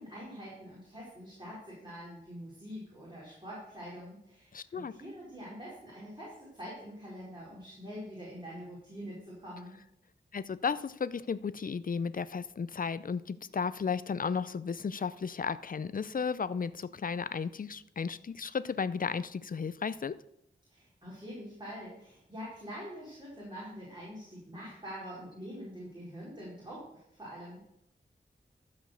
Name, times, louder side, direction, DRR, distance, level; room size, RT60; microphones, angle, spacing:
voice 1, 0.0-9.8 20.7-27.6, equal, 25° right, -7 dB, 4.4 m, -45 dB
voice 2, 4.5-4.9 10.3-20.2, left 6 dB, 45° left, 15 dB, 0.5 m, -34 dB
12.5 x 5.2 x 6.6 m, 0.78 s
wide cardioid pair, 85°, 19 cm